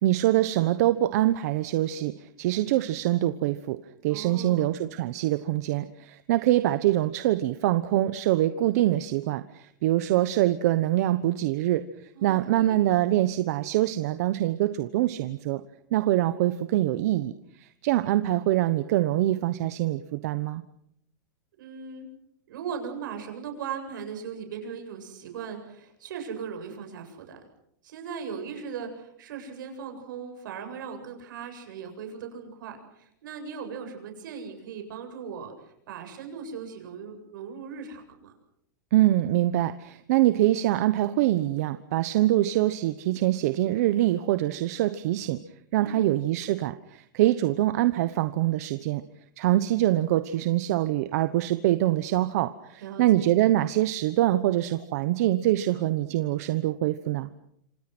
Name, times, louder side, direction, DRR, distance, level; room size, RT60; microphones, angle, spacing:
voice 1, 0.0-3.8 4.0-15.6 15.9-20.6 38.9-45.4 45.7-49.0 49.4-57.3, right 14 dB, 50° right, 12 dB, 1.1 m, -24 dB
voice 2, 4.1-4.7 12.1-12.8 21.6-22.1 22.5-27.4 27.8-38.3 45.8-46.0 52.8-53.0, right 6 dB, 70° right, 5 dB, 7.8 m, -38 dB
27.0 x 27.0 x 6.2 m, 0.74 s
supercardioid pair, 170°, 11 cm